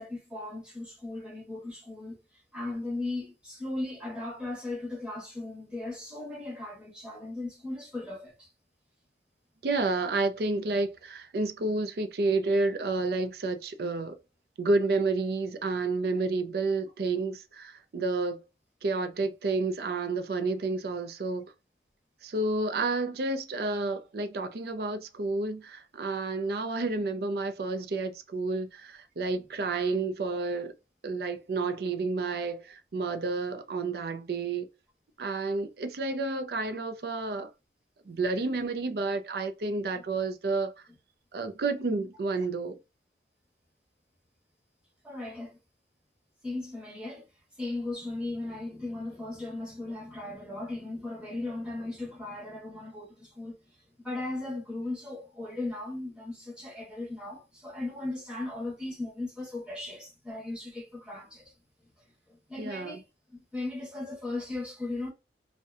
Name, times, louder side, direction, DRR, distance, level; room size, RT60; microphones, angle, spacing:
voice 1, 0.0-2.2 2.5-8.5 29.3-29.4 38.1-38.2 38.6-38.7 42.4-42.5 45.0-45.6 46.4-47.3 47.6-53.5 54.0-61.5 62.3-63.0 63.3-65.1, left 2 dB, 5° right, 0.9 m, -37 dB
voice 2, 9.6-14.2 14.6-18.4 18.8-21.5 22.2-30.7 31.0-34.7 35.2-37.5 38.1-40.7 41.3-42.8 62.6-63.0, right 3 dB, 60° right, 0.4 m, -30 dB
2.6 x 2.1 x 2.4 m
head